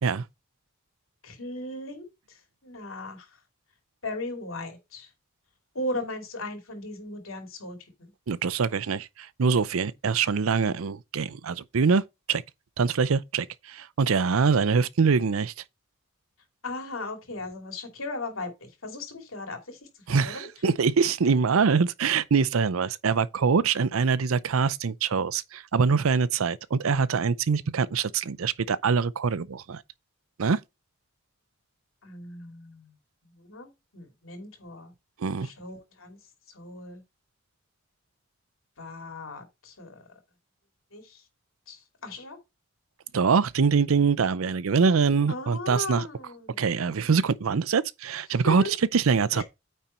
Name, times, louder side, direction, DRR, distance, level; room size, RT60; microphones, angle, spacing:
voice 1, 1.2-3.3 4.0-5.1 5.7-8.1 16.6-20.5 32.0-32.9 33.3-34.9 35.4-36.2 36.5-37.0 38.8-40.0 40.9-41.2 41.7-42.4 45.3-46.7 48.4-48.7 49.3-49.4, left 2 dB, 85° left, 2.8 m, -37 dB
voice 2, 8.3-12.0 12.3-12.4 12.8-15.5 20.1-29.8 30.4-30.6 35.2-35.5 43.1-46.1 46.6-49.4, right 5 dB, 85° right, 0.5 m, -24 dB
9.1 x 4.3 x 4.3 m
head